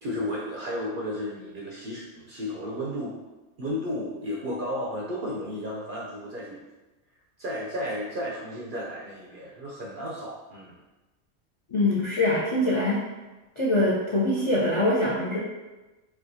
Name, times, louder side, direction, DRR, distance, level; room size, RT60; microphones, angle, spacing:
voice 1, 0.0-3.2 3.6-6.6 7.4-10.8, equal, 60° right, -4 dB, 0.5 m, -33 dB
voice 2, 11.7-13.0 13.6-15.4, left 1 dB, 50° left, -6 dB, 0.3 m, -23 dB
4.2 x 2.3 x 2.6 m, 1.1 s
omnidirectional pair, 1.3 m